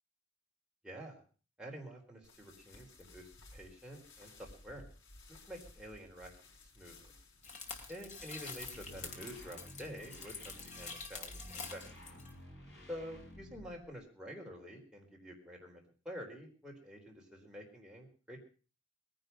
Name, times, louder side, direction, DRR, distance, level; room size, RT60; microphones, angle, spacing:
voice 1, 0.8-1.1 1.6-4.8 5.3-6.3 6.8-6.9 7.9-11.8 12.9-18.4, equal, 5° right, -1 dB, 4.0 m, -48 dB
sound 1, 2.2-9.6, left 2 dB, 75° left, 4.7 m, -57 dB
sound 2, 7.4-12.3, left 4 dB, 40° left, 2.6 m, -47 dB
sound 3, 8.6-14.0, equal, 55° left, 7.4 m, -53 dB
21.0 x 10.5 x 5.6 m, 0.37 s
head